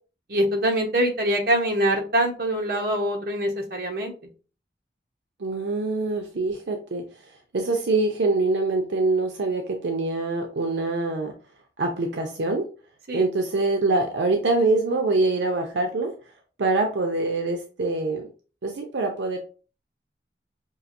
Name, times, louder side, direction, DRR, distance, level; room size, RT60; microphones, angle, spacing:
voice 1, 0.3-4.1 13.1-13.2, right 1 dB, 55° right, 1 dB, 1.0 m, -24 dB
voice 2, 5.4-11.3 11.8-12.7 13.1-16.2 16.6-18.3 18.6-19.4, right 3 dB, 80° right, 3 dB, 0.6 m, -24 dB
5.5 x 2.5 x 2.6 m, 0.36 s
head